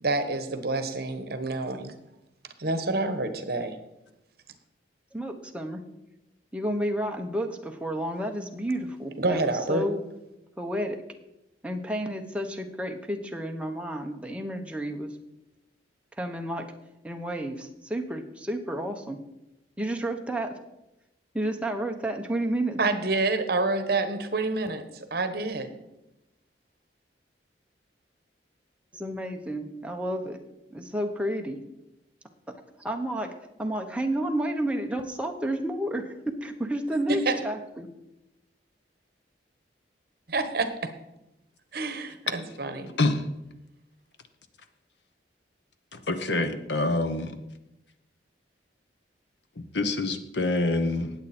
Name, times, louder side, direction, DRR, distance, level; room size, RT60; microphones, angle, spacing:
voice 1, 0.0-1.9 2.6-3.8 9.2-9.8 22.8-25.7 37.1-37.4 40.3-40.7 41.7-42.9, right 3 dB, 60° right, 9 dB, 1.2 m, -28 dB
voice 2, 5.1-5.8 6.5-10.0 10.6-11.0 11.6-15.2 16.2-16.7 17.0-19.2 19.8-20.5 21.3-22.8 28.9-30.4 30.7-31.6 32.5-37.9, right 1 dB, 5° right, 3 dB, 1.1 m, -31 dB
voice 3, 45.9-47.4 49.6-51.1, left 2 dB, 75° left, 9 dB, 1.1 m, -26 dB
19.0 x 7.9 x 4.4 m, 0.94 s
head